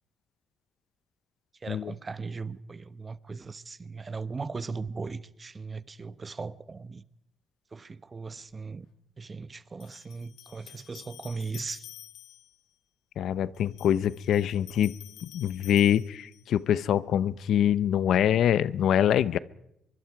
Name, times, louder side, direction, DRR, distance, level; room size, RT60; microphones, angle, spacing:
voice 1, 1.6-7.0 7.7-8.9 9.2-11.9, right 4 dB, 30° right, 0.9 m, -38 dB
sound 1, 8.5-8.6 9.8-12.6 13.5-16.6, left 13 dB, 90° left, 1.5 m, -50 dB
voice 2, 13.2-14.9 15.2-19.4, left 10 dB, 70° left, 0.7 m, -24 dB
24.5 x 23.5 x 4.8 m
cardioid pair, 90°, 0 cm